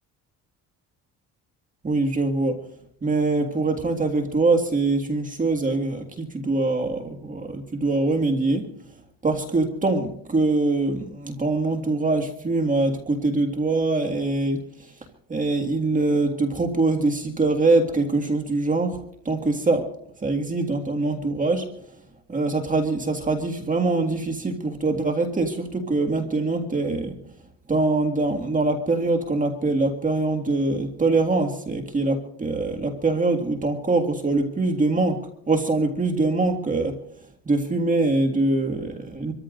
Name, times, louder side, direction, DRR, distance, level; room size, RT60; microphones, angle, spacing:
voice 1, 1.8-2.6 3.0-8.7 9.2-14.9 15.3-19.9 20.2-21.7 22.3-27.1 27.7-37.0 37.5-39.3, right 3 dB, 20° right, 4 dB, 1.9 m, -23 dB
27.0 x 14.0 x 2.6 m, 0.67 s
cardioid pair, 105°, 36 cm